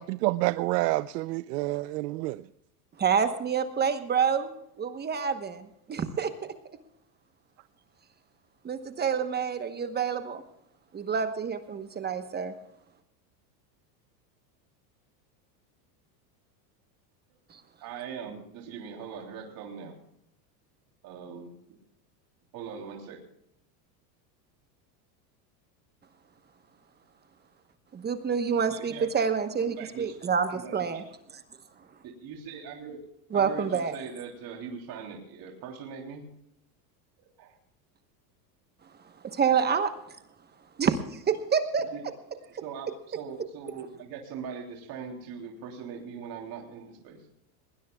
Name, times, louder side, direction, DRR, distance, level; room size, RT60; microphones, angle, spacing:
voice 1, 0.0-2.5, right 19 dB, 75° right, 0.6 m, -28 dB
voice 2, 3.0-6.3 8.6-10.4 10.9-12.5 17.5-17.6 27.9-31.0 33.3-33.9 39.2-40.2 40.8-41.9, right 6 dB, 20° right, 1.0 m, -28 dB
voice 3, 17.8-20.0 21.0-21.5 22.5-23.2 28.7-29.1 29.6-30.1 30.5-31.0 32.0-33.0 33.3-36.3 37.2-37.5 39.4-39.6 41.9-42.0 42.4-47.3, right 6 dB, 45° right, 3.3 m, -41 dB
20.5 x 19.5 x 2.3 m
supercardioid pair, 140°, 48 cm